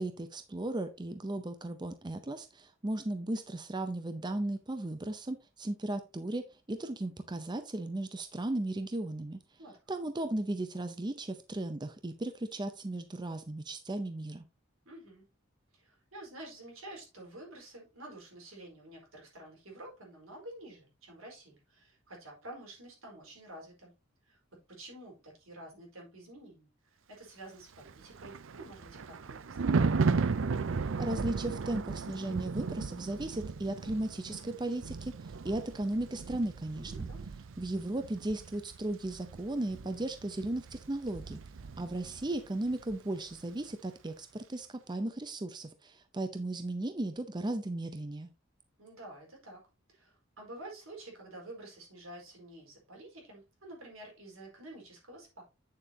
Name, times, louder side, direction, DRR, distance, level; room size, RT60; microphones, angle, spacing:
voice 1, 0.0-6.4 6.7-9.4 9.9-14.4 31.0-37.1 37.6-41.4 41.8-48.3, right 1 dB, 20° right, 0.6 m, -36 dB
voice 2, 14.8-15.2 15.7-23.9 24.2-24.4 24.7-30.0 36.7-37.3 48.8-49.6 49.9-55.4, right 1 dB, 85° right, 4.5 m, -49 dB
Thunder, 27.8-42.4 42.7-43.0, right 4 dB, 65° right, 0.5 m, -35 dB
8.9 x 7.0 x 2.8 m
head